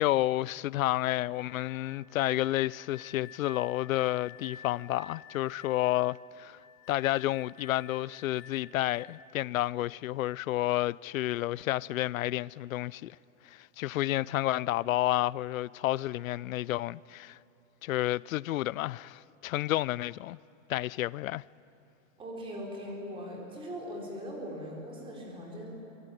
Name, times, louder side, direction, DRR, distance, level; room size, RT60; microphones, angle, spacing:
voice 1, 0.0-6.6 6.9-13.2 13.5-17.4 17.8-20.4 20.7-21.4, left 15 dB, 80° left, 0.6 m, -30 dB
sound 1, 1.2-9.4, left 6 dB, 55° left, 7.5 m, -52 dB
voice 2, 22.2-25.7, equal, 15° right, 4.5 m, -40 dB
26.0 x 24.0 x 9.2 m
supercardioid pair, 165°, 40 cm